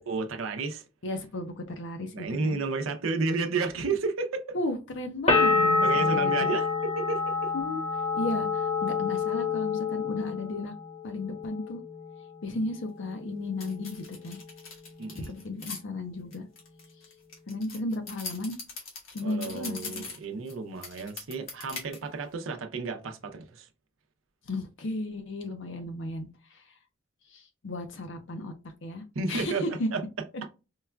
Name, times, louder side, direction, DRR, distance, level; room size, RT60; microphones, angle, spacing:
voice 1, 0.1-0.8 2.1-4.6 5.8-7.5 12.5-12.6 15.0-15.4 19.2-23.7 29.1-29.6 29.9-30.0, right 4 dB, 80° right, 0.6 m, -32 dB
voice 2, 1.0-2.6 4.5-6.5 7.5-7.8 8.1-10.7 11.0-11.8 12.4-14.4 15.3-16.4 17.5-18.6 19.1-20.0 24.5-26.7 27.3-28.5 28.8-29.9, left 2 dB, 65° left, 0.6 m, -34 dB
sound 1, 5.3-10.9 11.2-12.0, left 4 dB, 30° left, 0.8 m, -27 dB
sound 2, 13.6-15.8 16.3-20.5 20.8-22.0, left 4 dB, 85° left, 1.3 m, -41 dB
4.6 x 2.3 x 2.2 m
head